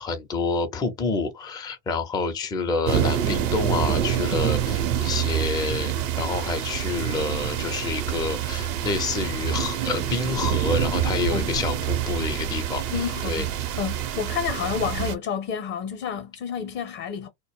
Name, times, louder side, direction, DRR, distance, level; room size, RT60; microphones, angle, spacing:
voice 1, 0.0-12.8 13.3-13.4, left 4 dB, 10° left, 0.4 m, -28 dB
sound 1, 2.9-15.1, right 10 dB, 70° right, 0.8 m, -26 dB
voice 2, 12.9-17.3, left 7 dB, 45° left, 0.7 m, -30 dB
2.1 x 2.0 x 2.9 m
hypercardioid pair, 85°, 49 cm